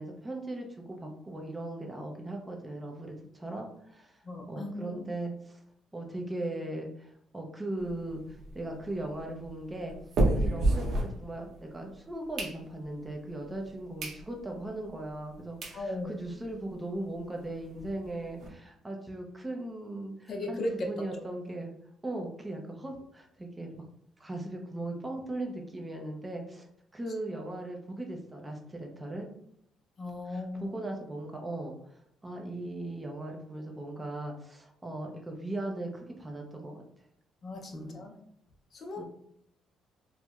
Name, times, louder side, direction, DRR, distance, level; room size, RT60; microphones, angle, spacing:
voice 1, 0.0-4.2 4.5-5.6 5.9-8.2 8.5-10.0 10.3-21.7 22.0-23.7 24.2-26.6 26.9-29.3 30.3-36.8 37.7-38.1 39.0-39.1, right 1 dB, 15° right, 2 dB, 0.5 m, -38 dB
voice 2, 4.2-5.0 15.7-16.1 20.3-20.9 30.0-30.7 37.4-38.2 38.7-39.0, left 1 dB, 45° left, 3 dB, 0.5 m, -36 dB
sound 1, 7.8-11.7 12.1-13.1 13.6-13.7 14.0-14.2 14.6-14.7 15.3-15.4 15.6-15.8 16.2-16.3 16.5-16.6 16.9-17.0 17.3-18.5, right 2 dB, 65° right, 0.8 m, -31 dB
4.3 x 2.1 x 2.3 m, 0.70 s
cardioid pair, 125°, 0 cm